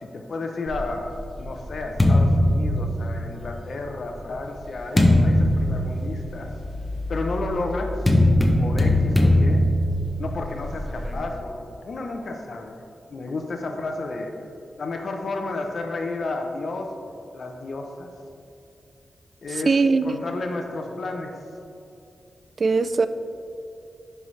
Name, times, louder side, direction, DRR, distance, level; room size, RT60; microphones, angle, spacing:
voice 1, 0.0-6.5 7.1-7.9 8.6-9.6 10.2-12.7 13.1-14.3 14.8-17.1 17.3-18.1 19.4-19.8 20.0-21.4, left 3 dB, 55° left, 3 dB, 0.6 m, -32 dB
sound 1, 0.7-3.5 4.2-11.2, left 1 dB, 10° left, 0.8 m, -21 dB
voice 2, 19.5-20.3 22.6-23.1, right 4 dB, 45° right, 12 dB, 0.3 m, -21 dB
10.0 x 5.5 x 3.2 m, 2.6 s
wide cardioid pair, 120°, 0 cm